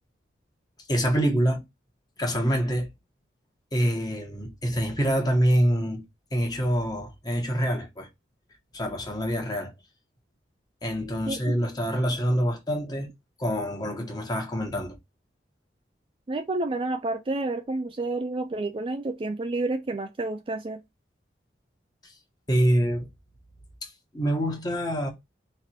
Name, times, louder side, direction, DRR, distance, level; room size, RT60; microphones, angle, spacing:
voice 1, 0.9-1.6 2.2-2.9 3.7-6.0 6.3-8.1 8.7-9.7 10.8-13.1 13.4-15.0 22.5-23.1 23.8-25.1, equal, 20° left, 1.2 m, -26 dB
voice 2, 16.3-20.8, right 2 dB, 30° right, 0.4 m, -29 dB
3.6 x 3.3 x 4.3 m
head